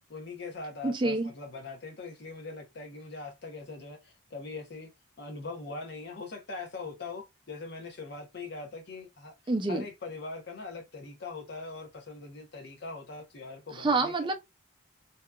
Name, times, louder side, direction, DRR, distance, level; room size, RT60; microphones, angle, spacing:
voice 1, 0.1-4.9 5.2-9.3 9.7-14.1, left 3 dB, 55° left, 0.8 m, -41 dB
voice 2, 0.8-1.3 9.5-9.8 13.7-14.3, right 3 dB, 25° right, 0.4 m, -27 dB
2.7 x 2.3 x 2.2 m
head